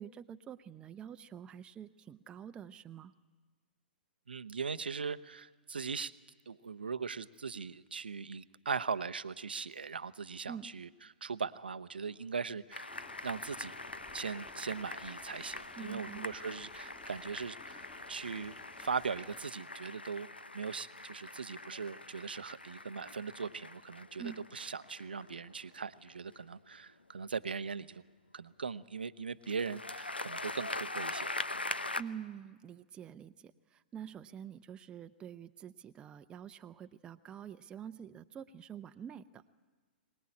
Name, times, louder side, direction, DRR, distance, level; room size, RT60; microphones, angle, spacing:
voice 1, 0.0-3.1 10.5-10.7 15.8-16.3 24.2-24.4 31.9-39.5, right 8 dB, 20° right, 9 dB, 0.6 m, -47 dB
voice 2, 4.3-6.1 6.5-10.9 11.2-12.9 13.2-13.7 14.1-20.3 20.5-28.0 28.3-31.5, right 5 dB, 75° right, 15 dB, 0.7 m, -40 dB
sound 1, 12.7-26.7 29.4-32.0, left 2 dB, 85° left, 0.9 m, -43 dB
sound 2, 12.9-19.4, left 4 dB, 15° left, 2.1 m, -58 dB
23.0 x 19.5 x 8.7 m, 1.4 s
figure-of-eight pair, 110°, 5 cm